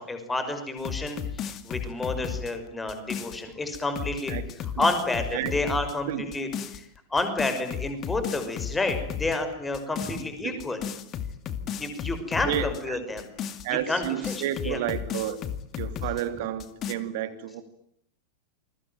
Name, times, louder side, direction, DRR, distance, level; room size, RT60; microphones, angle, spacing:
voice 1, 0.0-4.4 4.8-10.8 11.8-13.3 13.7-14.8, left 2 dB, 10° left, 8 dB, 5.8 m, -30 dB
sound 1, 0.8-3.4 3.7-5.9 6.3-6.8 7.2-9.4 9.7-10.2 10.6-12.8 13.2-16.2 16.6-16.9, left 8 dB, 30° left, 2.3 m, -34 dB
voice 2, 12.5-13.0 13.6-15.4 15.7-17.6, right 11 dB, 50° right, 10 dB, 3.3 m, -31 dB
28.5 x 22.5 x 9.2 m, 0.70 s
figure-of-eight pair, 90°, 0 cm